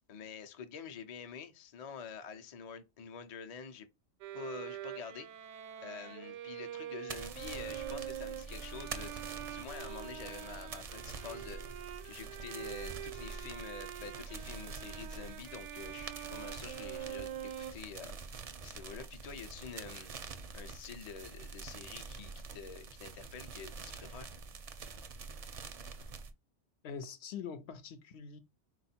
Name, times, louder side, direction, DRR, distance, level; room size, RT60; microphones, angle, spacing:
voice 1, 0.1-3.9 4.3-5.3 5.8-9.2 9.5-20.1 20.5-24.3, left 6 dB, 45° left, 0.5 m, -47 dB
Bowed string instrument, 4.2-17.7, right 11 dB, 90° right, 0.9 m, -45 dB
sound 1, 7.1-26.3, right 4 dB, 45° right, 0.5 m, -46 dB
voice 2, 26.8-28.4, left 6 dB, 70° left, 0.8 m, -44 dB
4.2 x 2.4 x 4.1 m
omnidirectional pair, 1.2 m